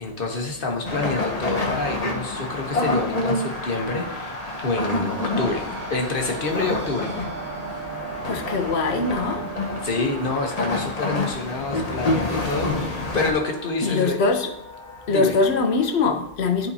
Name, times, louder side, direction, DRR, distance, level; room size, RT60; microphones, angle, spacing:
voice 1, 0.0-7.2 9.8-14.2 15.1-15.3, left 3 dB, 55° left, 2 dB, 1.2 m, -27 dB
sound 1, 0.8-13.3, left 2 dB, 40° left, 0.9 m, -28 dB
sound 2, 2.1-16.1, equal, 5° left, 1.6 m, -45 dB
sound 3, 2.6-12.7, right 5 dB, 75° right, 1.9 m, -39 dB
voice 2, 8.3-9.4 13.8-14.5 15.1-16.7, left 4 dB, 75° left, 5 dB, 1.0 m, -22 dB
11.0 x 4.2 x 2.7 m, 0.77 s
omnidirectional pair, 1.1 m